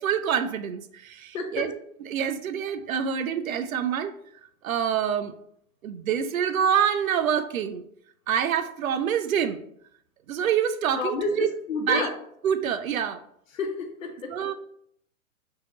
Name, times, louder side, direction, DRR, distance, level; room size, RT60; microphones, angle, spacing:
voice 1, 0.0-1.7 2.1-4.1 4.6-5.3 5.8-7.8 8.3-9.6 10.3-11.5 11.9-12.1 12.4-13.2 14.3-14.5, right 8 dB, 75° right, 11 dB, 0.5 m, -26 dB
voice 2, 1.3-1.7 10.9-12.1 13.5-14.3, left 5 dB, 65° left, 5 dB, 0.9 m, -30 dB
4.7 x 2.9 x 2.9 m, 0.69 s
figure-of-eight pair, 115°, 42 cm